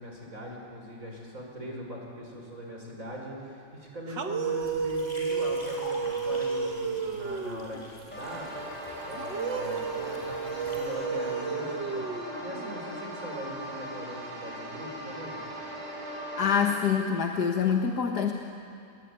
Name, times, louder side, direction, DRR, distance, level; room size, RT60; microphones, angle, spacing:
voice 1, 0.0-8.5 9.0-12.1 12.4-15.4, equal, 45° right, 0 dB, 5.9 m, -41 dB
sound 1, 4.1-7.8 9.2-12.8, right 5 dB, 85° right, 2.2 m, -32 dB
sound 2, 4.6-10.9, left 1 dB, 20° left, 5.7 m, -47 dB
sound 3, 8.1-16.7, equal, 5° left, 7.6 m, -39 dB
voice 2, 16.4-18.3, left 7 dB, 65° left, 2 dB, 1.9 m, -25 dB
27.5 x 21.5 x 9.8 m, 2.5 s
omnidirectional pair, 1.9 m